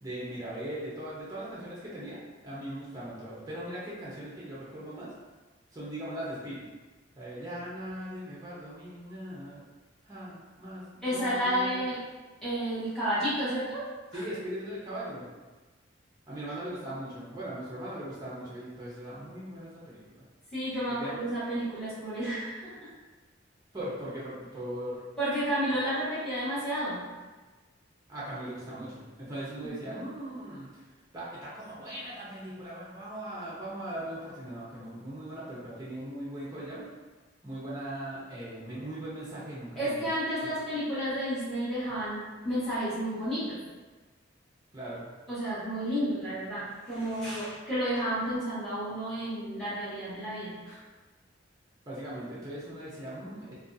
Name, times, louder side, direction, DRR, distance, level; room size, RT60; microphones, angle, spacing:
voice 1, 0.0-5.1 5.7-6.6 7.2-9.6 10.0-11.8 14.1-15.3 16.3-20.0 20.9-21.3 23.7-25.0 28.1-30.7 31.1-36.8 37.4-40.0 44.7-45.0 51.9-53.6, right 1 dB, 20° right, -8 dB, 0.6 m, -39 dB
voice 2, 11.0-12.0 12.4-13.8 14.1-14.2 20.5-22.9 25.2-27.0 29.6-29.7 39.7-43.6 45.3-50.8, equal, 5° left, -13 dB, 1.2 m, -31 dB
2.6 x 2.3 x 2.5 m, 1.3 s
head